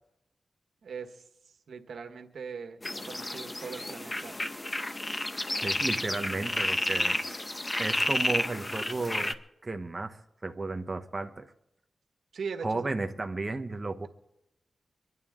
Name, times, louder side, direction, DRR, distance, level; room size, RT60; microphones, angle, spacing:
voice 1, 0.8-2.8 3.0-4.3 12.3-12.9, right 5 dB, 85° right, 1.5 m, -40 dB
sound 1, 2.8-9.3, left 1 dB, 25° left, 1.0 m, -31 dB
voice 2, 5.6-7.2 7.8-9.3 9.6-11.5 12.6-14.1, right 3 dB, 30° right, 1.0 m, -33 dB
25.0 x 11.0 x 3.7 m
cardioid pair, 80°, 0 cm